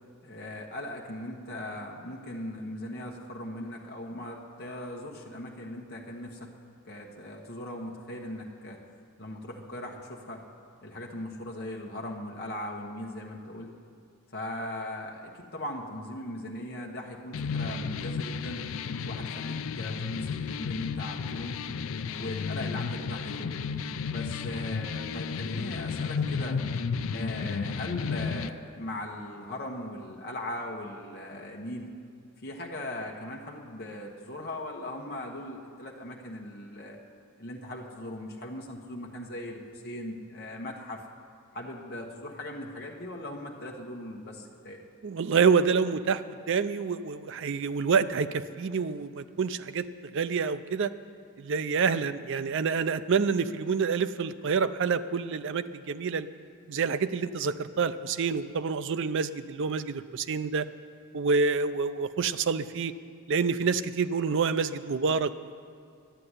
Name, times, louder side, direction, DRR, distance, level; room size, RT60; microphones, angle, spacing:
voice 1, 0.2-6.5 6.8-8.8 9.2-10.4 10.8-13.7 14.3-18.6 19.0-21.6 22.1-23.6 24.1-26.6 27.1-31.9 32.4-37.0 37.4-41.1 41.5-44.8, left 1 dB, 45° left, -1 dB, 1.2 m, -39 dB
sound 1, 17.3-28.5, left 5 dB, 65° left, 0.4 m, -33 dB
voice 2, 45.0-49.9 50.1-50.9 51.4-56.3 56.7-60.7 61.1-62.9 63.3-65.5, right 5 dB, 55° right, 12 dB, 0.4 m, -27 dB
11.5 x 7.7 x 9.7 m, 2.2 s
head